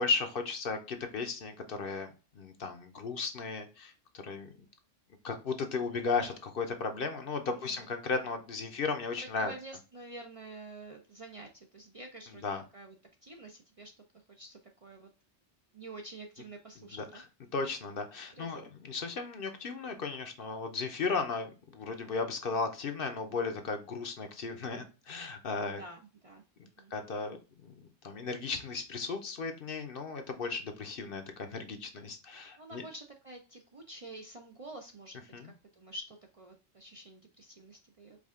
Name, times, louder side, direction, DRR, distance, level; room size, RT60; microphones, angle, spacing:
voice 1, 0.0-3.9 4.2-4.5 5.2-9.5 12.4-12.6 17.5-25.8 26.9-27.7 28.0-32.8 35.3-35.5, left 4 dB, 55° left, 6 dB, 0.8 m, -35 dB
voice 2, 7.5-7.8 9.4-12.4 12.7-13.0 13.2-13.9 14.3-15.1 15.7-17.2 18.3-18.7 25.6-26.4 26.8-26.9 32.6-38.2, right 2 dB, 40° right, 2 dB, 0.5 m, -48 dB
4.9 x 2.4 x 3.6 m, 0.31 s
omnidirectional pair, 1.2 m